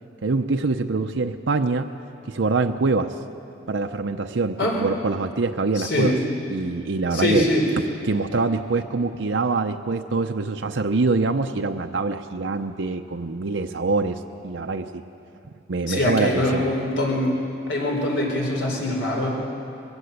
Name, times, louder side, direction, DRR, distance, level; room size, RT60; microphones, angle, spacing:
voice 1, 0.2-1.9 2.2-3.1 3.7-6.1 6.5-7.4 8.0-15.0 15.7-16.6, right 3 dB, 85° right, 5 dB, 0.7 m, -24 dB
voice 2, 5.7-6.2 7.1-7.7 15.9-17.4 17.7-19.3, left 1 dB, 75° left, -1 dB, 4.3 m, -23 dB
21.5 x 16.5 x 8.2 m, 2.7 s
head